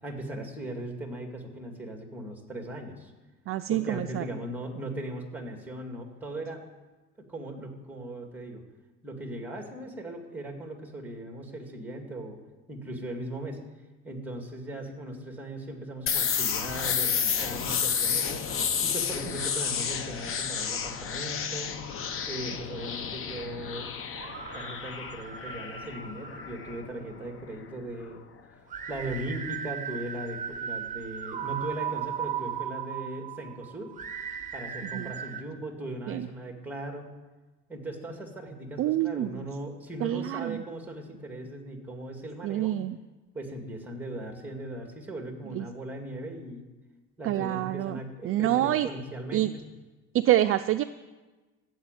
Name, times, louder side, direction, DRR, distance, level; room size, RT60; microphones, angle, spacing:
voice 1, 0.0-3.1 3.7-6.6 7.2-8.6 9.0-12.4 12.7-13.6 14.0-18.5 18.8-21.8 22.3-23.9 24.5-28.2 28.9-33.9 34.5-37.1 37.7-42.8 43.3-46.7 47.2-49.6, right 1 dB, 5° right, 3 dB, 2.1 m, -38 dB
voice 2, 3.5-4.3 34.9-35.1 36.1-36.3 38.8-39.5 40.0-40.6 42.4-43.0 45.5-45.7 47.2-48.9 49.3-49.5 50.1-50.8, right 13 dB, 45° right, 10 dB, 0.4 m, -27 dB
sound 1, 16.1-27.7, left 7 dB, 40° left, 1.0 m, -31 dB
sound 2, 24.1-27.3 28.7-35.4, right 8 dB, 25° right, 1.1 m, -37 dB
14.5 x 7.8 x 9.1 m, 1.2 s
cardioid pair, 155°, 33 cm